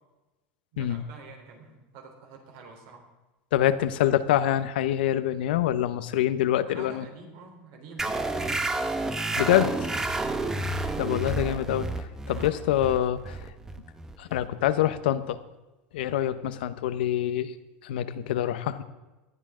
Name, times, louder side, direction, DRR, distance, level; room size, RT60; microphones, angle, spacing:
voice 1, 0.7-3.0 6.7-8.7 10.2-10.7 12.3-12.6, right 4 dB, 60° right, 3 dB, 3.7 m, -46 dB
voice 2, 3.5-7.1 9.4-9.9 11.0-11.9 12.3-13.4 14.2-15.4 15.9-17.5 17.8-18.8, left 11 dB, 90° left, 12 dB, 0.9 m, -25 dB
sound 1, 8.0-15.1, right 2 dB, 10° right, 0.8 m, -30 dB
19.0 x 12.0 x 3.8 m, 1.1 s
supercardioid pair, 150°, 5 cm